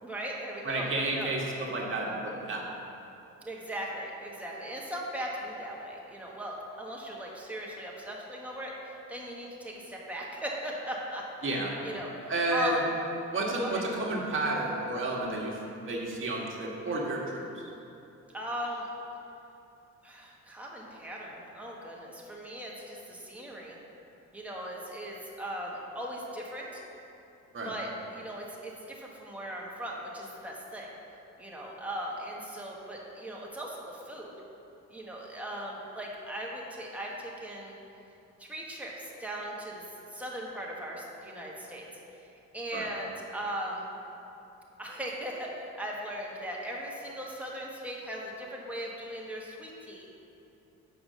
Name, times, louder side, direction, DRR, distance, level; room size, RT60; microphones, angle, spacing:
voice 1, 0.0-1.3 3.4-8.7 9.1-11.2 11.8-13.0 13.6-13.8 18.3-18.9 20.0-23.8 24.3-26.8 27.6-30.9 31.4-34.3 34.9-37.7 38.4-39.8 40.1-41.9 42.1-42.3 42.5-43.9 44.8-50.1, equal, 5° right, -4 dB, 1.4 m, -38 dB
voice 2, 0.6-2.6 11.4-11.7 12.3-12.8 13.3-15.5 15.8-17.2 27.5-27.7 42.7-42.8, right 2 dB, 40° right, -3 dB, 1.5 m, -31 dB
5.8 x 5.1 x 6.7 m, 2.9 s
cardioid pair, 90°, 30 cm